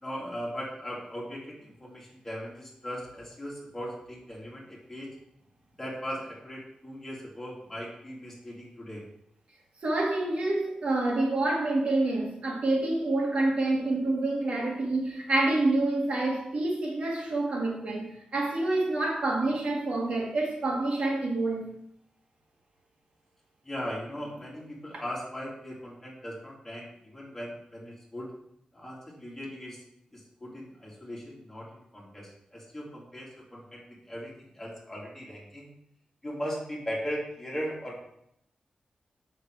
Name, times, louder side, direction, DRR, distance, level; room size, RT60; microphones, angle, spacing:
voice 1, 0.0-5.1 5.8-9.0 23.6-28.3 28.7-29.8 30.1-35.7 36.2-38.1, equal, 15° left, 2.8 m, -38 dB
voice 2, 9.8-21.7, right 2 dB, 55° right, 2.0 m, -27 dB
7.3 x 6.4 x 4.7 m
wide cardioid pair, 170°, 2 cm